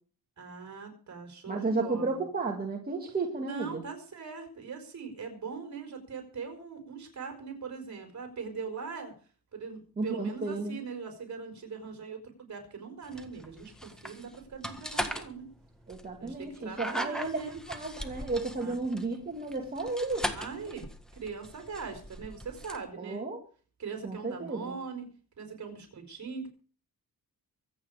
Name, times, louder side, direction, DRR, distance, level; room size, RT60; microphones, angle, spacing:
voice 1, 0.4-2.3 3.4-9.1 9.5-15.5 16.2-17.6 18.6-18.7 20.3-20.9 21.1-23.2 23.8-25.1 25.4-26.5, right 5 dB, 50° right, 5 dB, 4.8 m, -41 dB
voice 2, 1.5-3.8 10.0-10.8 15.9-17.4 17.7-20.3 23.0-23.4 24.0-24.8, right 3 dB, 25° right, 1 dB, 2.3 m, -33 dB
sound 1, 13.0-22.8, equal, ahead, 1.6 m, -39 dB
24.5 x 8.7 x 5.0 m, 0.41 s
wide cardioid pair, 165°, 36 cm